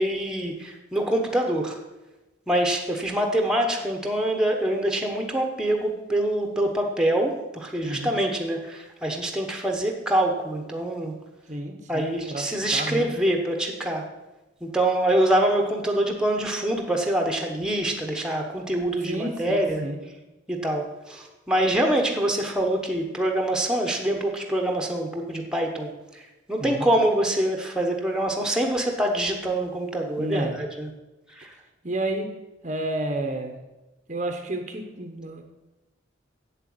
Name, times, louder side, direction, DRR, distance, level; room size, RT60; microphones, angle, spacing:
voice 1, 0.0-1.8 2.5-11.1 11.9-14.0 14.6-19.8 20.5-26.2 26.5-30.9 31.4-31.5, right 1 dB, 5° right, 2 dB, 1.2 m, -25 dB
voice 2, 7.8-8.1 11.5-13.1 19.0-20.0 26.6-26.9 30.2-30.6 31.8-32.3 32.6-33.6 34.1-35.4, right 1 dB, 35° right, 5 dB, 0.9 m, -31 dB
8.1 x 7.8 x 7.8 m, 1.0 s
head